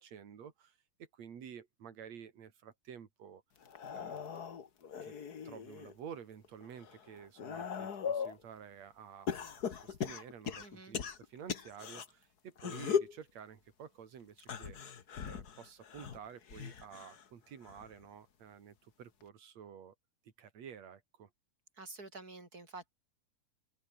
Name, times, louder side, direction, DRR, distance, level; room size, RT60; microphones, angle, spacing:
voice 1, 0.0-3.4 3.9-4.3 5.0-5.1 5.4-14.8 15.2-19.9 20.4-21.3, right 8 dB, 50° right, 3.5 m, -51 dB
sound 1, 3.6-5.9 6.4-8.4 9.3-12.1 12.6-13.2 14.4-17.3 17.6-18.0 19.2-19.3, left 7 dB, 50° left, 1.2 m, -39 dB
voice 2, 10.6-11.0 21.8-22.9, right 3 dB, 25° right, 5.8 m, -49 dB
omnidirectional pair, 4.0 m